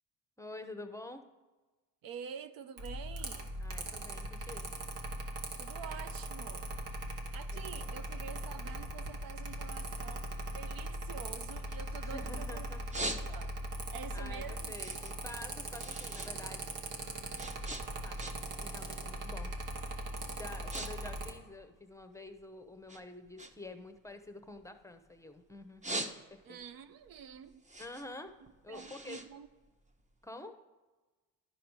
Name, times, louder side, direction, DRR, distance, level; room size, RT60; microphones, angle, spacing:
voice 1, 0.4-1.2 3.6-4.7 7.5-7.9 12.0-12.8 14.1-16.8 18.0-18.2 18.6-19.5 20.3-26.0 26.3-26.6 27.8-28.3 28.6-29.2 30.2-30.5, left 2 dB, 10° left, 0.8 m, -48 dB
voice 2, 2.0-3.5 5.6-12.7 12.9-14.8 20.3-20.4 26.4-27.6 28.7-29.5, right 7 dB, 60° right, 0.6 m, -48 dB
Mechanical fan, 2.8-21.3, right 1 dB, 80° right, 1.4 m, -40 dB
sound 1, 12.9-13.7 14.1-16.3 16.6-18.6 18.9-19.3 19.9-20.1 20.4-20.9 21.2-22.4 22.9-25.2 25.6-26.6 27.0-30.2, right 1 dB, 20° right, 1.0 m, -42 dB
11.5 x 5.0 x 4.7 m
supercardioid pair, 70°, 39 cm